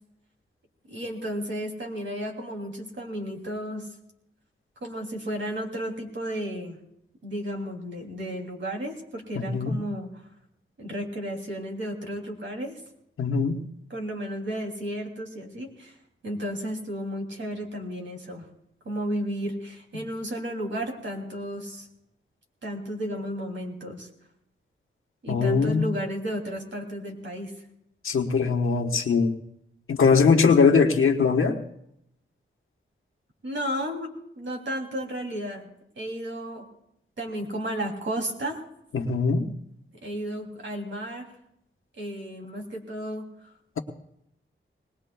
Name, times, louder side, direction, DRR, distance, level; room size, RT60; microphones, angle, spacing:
voice 1, 0.9-3.9 4.8-6.8 7.2-10.2 10.8-12.8 13.9-15.9 16.2-18.5 18.8-21.9 22.6-24.1 25.2-27.6 33.4-35.7 36.0-36.7 37.2-38.6 40.0-41.3 42.0-43.5, equal, 65° right, 2 dB, 2.9 m, -33 dB
voice 2, 9.3-9.8 13.2-13.6 25.3-25.9 28.0-29.3 29.9-31.6 38.9-39.5, left 5 dB, 80° left, 3 dB, 1.2 m, -21 dB
21.5 x 19.5 x 2.3 m, 0.77 s
wide cardioid pair, 90°, 21 cm